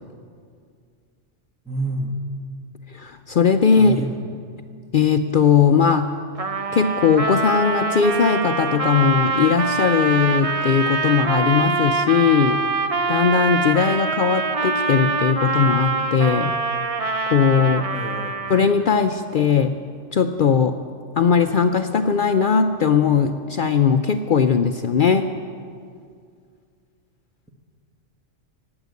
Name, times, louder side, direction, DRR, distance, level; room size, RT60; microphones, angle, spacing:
voice 1, 1.6-2.2 3.8-4.2 17.9-18.3, right 1 dB, 5° right, 2 dB, 1.3 m, -28 dB
voice 2, 2.9-4.0 4.9-6.1 6.7-12.6 13.1-16.6 17.3-17.9 18.5-19.8 20.1-20.8 21.2-25.3, left 6 dB, 60° left, 8 dB, 0.5 m, -19 dB
Trumpet, 6.4-18.8, right 4 dB, 35° right, 0.6 m, -24 dB
18.5 x 8.0 x 8.2 m, 2.2 s
omnidirectional pair, 1.4 m